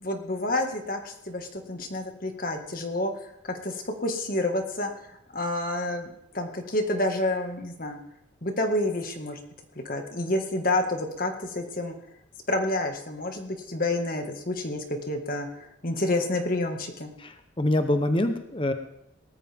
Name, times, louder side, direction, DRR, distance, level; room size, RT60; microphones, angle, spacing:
voice 1, 0.0-6.1 6.3-8.0 8.4-9.4 9.9-11.9 12.5-17.1, left 1 dB, 45° left, 5 dB, 1.9 m, -29 dB
voice 2, 17.2-18.7, left 1 dB, 25° left, 8 dB, 0.9 m, -25 dB
19.0 x 14.0 x 3.6 m, 0.79 s
head